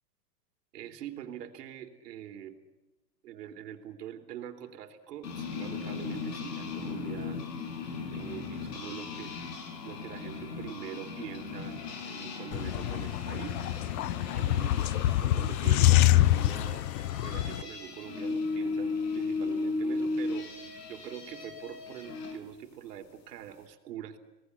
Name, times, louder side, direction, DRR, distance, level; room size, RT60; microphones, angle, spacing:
voice 1, 0.7-2.6 3.2-7.4 7.9-9.4 9.8-13.6 14.3-14.9 15.2-16.8 17.2-20.5 20.9-24.2, right 10 dB, 70° right, 6 dB, 3.8 m, -44 dB
sound 1, 5.2-22.4, left 4 dB, 75° left, 6.3 m, -37 dB
sound 2, 12.5-17.6, left 14 dB, 60° left, 0.8 m, -26 dB
27.5 x 19.0 x 9.5 m, 1.1 s
supercardioid pair, 150°, 49 cm